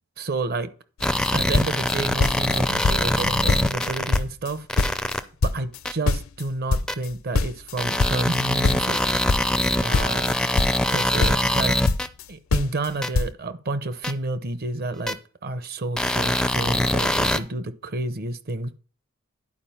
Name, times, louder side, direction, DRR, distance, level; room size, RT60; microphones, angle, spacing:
voice 1, 0.2-0.7 1.3-5.1 5.5-9.0 9.8-10.3 10.9-11.8 12.3-15.2 15.4-18.8, right 2 dB, 45° right, 0.8 m, -30 dB
sound 1, 1.0-1.3 1.5-2.6 2.8-3.2 3.5-5.2 5.4-8.4 8.6-10.9 11.2-12.2 12.5-12.9 13.1-13.3, left 3 dB, 65° left, 0.5 m, -24 dB
sound 2, 1.0-4.2 4.7-5.2 5.9-6.0 6.9-7.0 7.8-12.1 13.0-13.1 14.0-14.1 15.1-15.2 16.0-17.4, left 1 dB, 5° left, 0.4 m, -23 dB
11.0 x 4.7 x 5.6 m
head